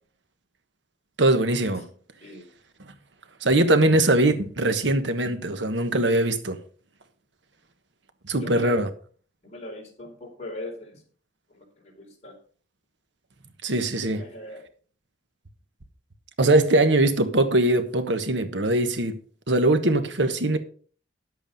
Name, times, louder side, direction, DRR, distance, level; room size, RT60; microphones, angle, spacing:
voice 1, 1.2-1.9 3.4-6.6 8.3-8.9 13.6-14.2 16.4-19.2 19.5-20.6, right 2 dB, 85° right, 1.4 m, -21 dB
voice 2, 2.2-2.5 8.4-8.8 9.4-11.0 11.5-12.3 14.2-14.7, left 1 dB, 40° left, 4.5 m, -40 dB
11.0 x 8.2 x 5.3 m
head